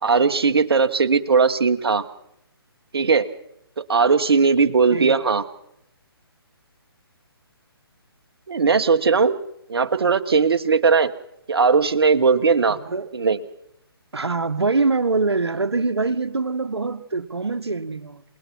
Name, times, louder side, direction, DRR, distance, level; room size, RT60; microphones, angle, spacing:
voice 1, 0.0-2.0 2.9-3.3 3.8-5.4 8.5-9.4 9.7-11.1 11.5-12.8 13.1-13.4, right 5 dB, 70° right, 1.5 m, -18 dB
voice 2, 14.1-18.2, right 3 dB, 85° right, 1.5 m, -24 dB
28.5 x 20.0 x 4.6 m
figure-of-eight pair, 140°, 13 cm